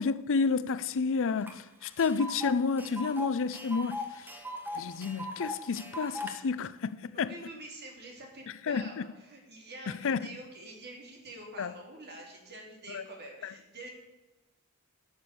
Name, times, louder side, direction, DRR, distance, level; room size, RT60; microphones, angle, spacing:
voice 1, 0.0-4.3 4.7-7.3 8.7-9.1 10.0-10.2 11.6-11.7 12.9-13.0 13.4-13.5, left 5 dB, 60° left, 0.5 m, -30 dB
Tick, 1.5-1.6 1.8-6.3, left 1 dB, 10° right, 1.4 m, -38 dB
voice 2, 7.1-13.9, right 2 dB, 50° right, 3.1 m, -47 dB
12.0 x 7.1 x 6.8 m
head